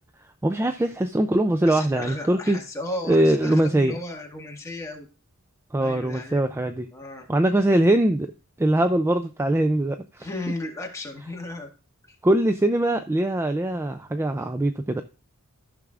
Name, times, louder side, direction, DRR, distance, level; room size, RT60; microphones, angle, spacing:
voice 1, 0.4-2.6 3.1-4.0 5.7-6.9 7.3-8.3 8.6-10.3 12.2-15.0, right 1 dB, 10° right, 7 dB, 0.3 m, -22 dB
voice 2, 1.6-5.1 5.8-6.4 6.9-7.3 10.2-11.7 12.1-12.2, left 2 dB, 15° left, 0 dB, 1.7 m, -35 dB
13.5 x 6.0 x 2.4 m, 0.32 s
head